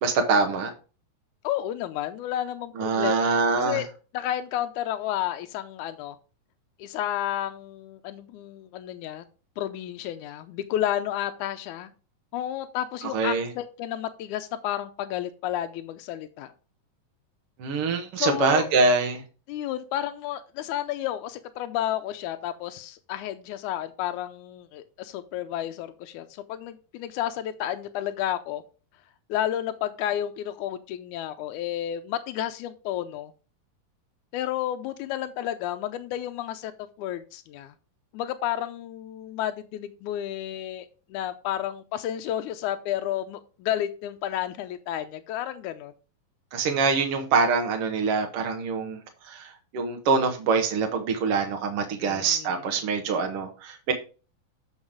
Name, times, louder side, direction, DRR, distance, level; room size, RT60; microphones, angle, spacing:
voice 1, 0.0-0.7 2.8-3.8 13.1-13.5 17.6-19.2 46.5-49.0 49.3-53.9, right 4 dB, 75° right, 3 dB, 1.3 m, -24 dB
voice 2, 1.4-3.2 3.6-3.9 4.1-6.2 6.8-9.2 9.6-11.9 12.3-16.5 18.2-18.8 19.5-28.6 29.3-33.3 34.3-36.7 37.0-37.7 38.1-45.9 52.0-52.6, left 12 dB, 85° left, 9 dB, 1.8 m, -31 dB
7.2 x 5.8 x 4.9 m, 0.35 s
omnidirectional pair, 4.1 m